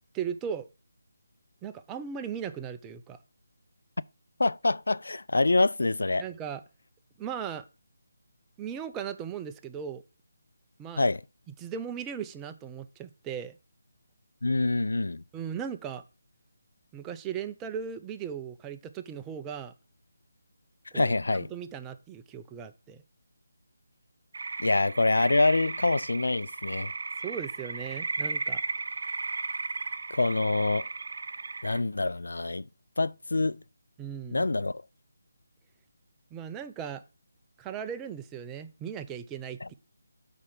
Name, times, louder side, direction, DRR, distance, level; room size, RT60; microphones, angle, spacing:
voice 1, 0.1-0.7 1.6-3.2 6.2-6.6 7.2-7.6 8.6-10.0 10.8-11.1 11.6-13.6 15.3-16.0 16.9-19.7 20.9-23.0 27.2-28.6 34.0-34.5 36.3-37.0 37.6-39.7, right 8 dB, 10° right, 0.5 m, -37 dB
voice 2, 4.4-6.2 11.0-11.2 14.4-15.2 20.9-21.5 24.6-26.9 30.1-30.9 31.6-32.7 33.0-33.6 34.3-34.8 39.6-39.7, left 2 dB, 80° left, 0.3 m, -26 dB
sound 1, 24.3-31.8, right 3 dB, 55° right, 0.7 m, -35 dB
8.4 x 4.3 x 4.9 m
figure-of-eight pair, 165°, 0 cm